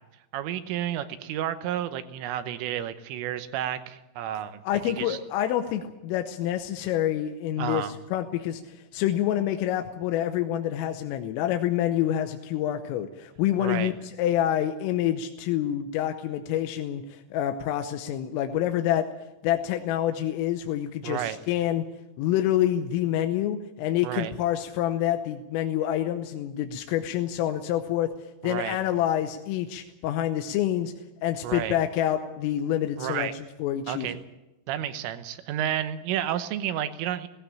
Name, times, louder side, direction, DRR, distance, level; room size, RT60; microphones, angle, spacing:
voice 1, 0.3-4.6 5.0-5.2 7.6-8.0 13.6-13.9 21.0-21.4 24.0-24.3 28.4-28.8 31.4-31.8 33.0-33.3 33.9-34.2 34.7-37.3, right 11 dB, 85° right, 10 dB, 3.6 m, -31 dB
voice 2, 4.6-19.1 19.4-21.8 22.2-28.1 28.4-30.9 31.2-33.3 33.6-34.1, left 11 dB, 85° left, 6 dB, 3.5 m, -27 dB
18.0 x 16.0 x 8.8 m, 0.98 s
omnidirectional pair, 5.8 m